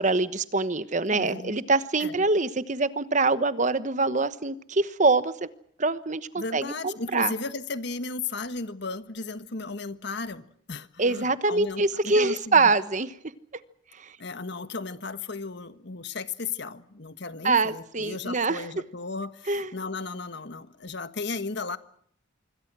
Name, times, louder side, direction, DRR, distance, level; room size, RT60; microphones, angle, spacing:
voice 1, 0.0-5.5 5.8-7.3 11.0-13.1 14.0-14.1 17.4-18.6 19.5-19.7, right 3 dB, 40° right, 13 dB, 1.1 m, -24 dB
voice 2, 1.1-1.6 2.0-2.2 6.3-12.7 14.2-21.8, left 4 dB, 60° left, 11 dB, 1.5 m, -35 dB
26.0 x 25.0 x 6.2 m, 0.66 s
head